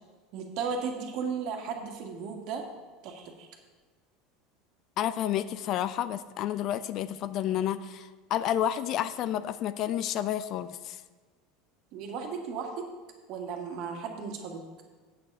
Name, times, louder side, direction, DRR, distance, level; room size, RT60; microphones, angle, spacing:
voice 1, 0.3-2.6 3.0-3.5 11.9-12.9 13.3-14.6, right 5 dB, 55° right, 3 dB, 1.6 m, -35 dB
voice 2, 5.0-11.0, left 11 dB, 45° left, 14 dB, 0.4 m, -30 dB
8.3 x 7.6 x 5.4 m, 1.4 s
supercardioid pair, 135°, 0 cm